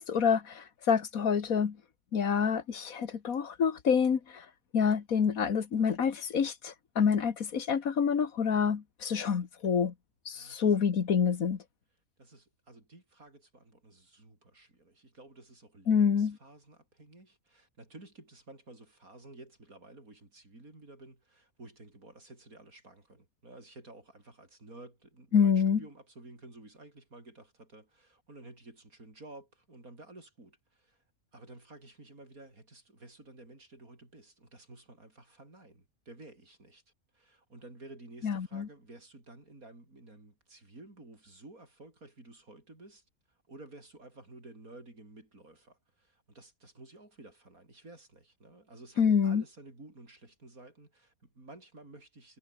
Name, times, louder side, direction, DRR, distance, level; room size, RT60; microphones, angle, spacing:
voice 1, 0.0-1.8 2.1-4.5 4.7-9.9 10.3-11.6 15.9-16.4 25.3-25.8 38.2-38.7 49.0-49.4, left 6 dB, 75° left, 2.0 m, -27 dB
voice 2, 10.3-10.8 12.2-31.0 31.3-36.8 37.1-52.4, right 2 dB, 80° right, 6.7 m, -53 dB
omnidirectional pair, 1.5 m